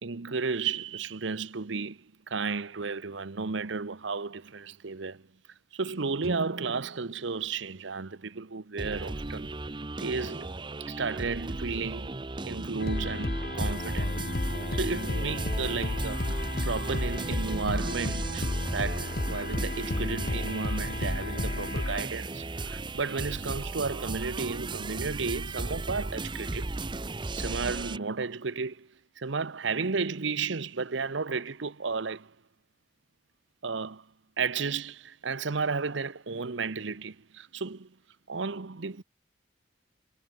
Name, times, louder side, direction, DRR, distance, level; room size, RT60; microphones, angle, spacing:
voice 1, 0.0-5.3 5.7-9.5 10.0-10.5 10.8-12.2 12.4-14.2 14.7-26.8 27.3-28.9 29.2-32.3 33.6-34.1 34.4-38.0 38.3-39.0, right 4 dB, 70° right, 0.9 m, -33 dB
Guitar, 6.2-8.8, right 1 dB, 55° right, 1.6 m, -43 dB
sound 1, 8.8-28.0, right 2 dB, 25° right, 0.8 m, -36 dB
sound 2, 12.8-22.1, left 1 dB, 50° left, 1.5 m, -32 dB
head